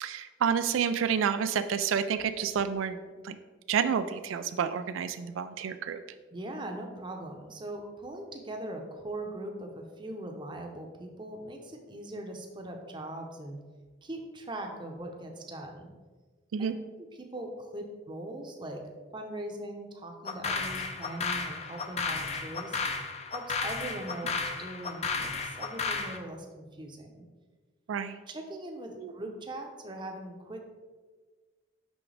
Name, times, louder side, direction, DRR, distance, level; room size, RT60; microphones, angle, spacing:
voice 1, 0.0-3.0 3.2-3.4 3.7-6.0 16.5-16.7 27.9-28.2 29.0-29.1, right 7 dB, 90° right, 11 dB, 0.3 m, -29 dB
voice 2, 6.3-13.6 14.0-15.9 16.6-18.8 19.1-22.8 23.3-27.2 28.3-30.7, right 1 dB, 25° right, 3 dB, 0.7 m, -40 dB
sound 1, 20.2-26.2, left 4 dB, 35° left, 0.5 m, -33 dB
6.2 x 5.8 x 3.3 m, 1.4 s
head